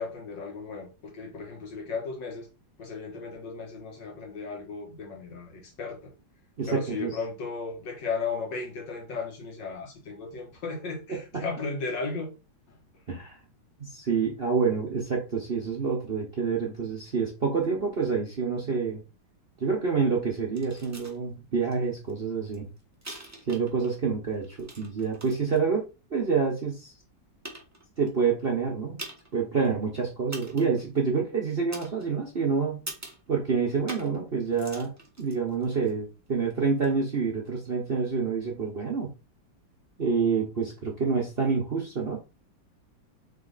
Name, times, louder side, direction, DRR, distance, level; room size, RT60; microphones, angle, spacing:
voice 1, 0.0-2.5 2.8-6.1 6.7-12.4, left 4 dB, 70° left, 1.9 m, -35 dB
voice 2, 6.6-7.1 11.1-11.5 13.1-13.4 13.8-19.0 19.6-22.7 23.5-26.9 28.0-29.1 29.3-32.9 33.3-39.1 40.0-42.2, right 5 dB, 40° right, 0.9 m, -27 dB
sound 1, 20.5-21.2 21.7-21.8 22.1-24.0 24.3-25.6 26.3-26.4 27.0-27.1 27.4-28.1 29.0-29.4 29.6-29.7 30.3-30.8 31.7-32.4 32.9-33.3 33.9-34.2 34.5-35.9 36.8-36.9, right 2 dB, 15° right, 0.5 m, -43 dB
4.0 x 3.4 x 3.9 m
omnidirectional pair, 2.0 m